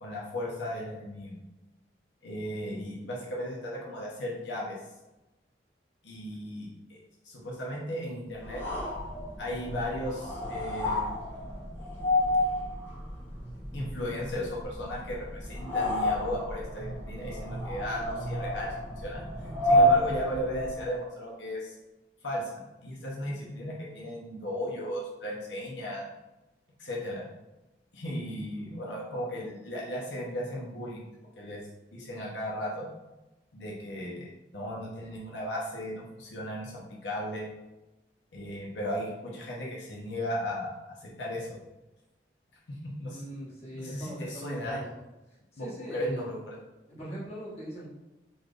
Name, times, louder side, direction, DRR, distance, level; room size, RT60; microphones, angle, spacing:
voice 1, 0.0-1.4 2.2-4.8 6.0-6.7 7.2-8.6 9.4-11.1 13.7-19.2 19.6-21.7 22.2-26.1 26.8-27.2 27.9-31.0 31.4-31.6 31.9-32.9 33.5-37.5 38.3-40.8 41.0-41.6 42.7-43.2 43.7-44.8 45.6-46.6, equal, 80° left, -4 dB, 0.8 m, -36 dB
sound 1, 8.4-21.0, left 1 dB, 15° left, 1.0 m, -30 dB
voice 2, 43.0-44.9 45.5-46.2 46.9-47.9, equal, 35° left, -7 dB, 1.2 m, -40 dB
4.2 x 3.2 x 2.4 m, 1.0 s
head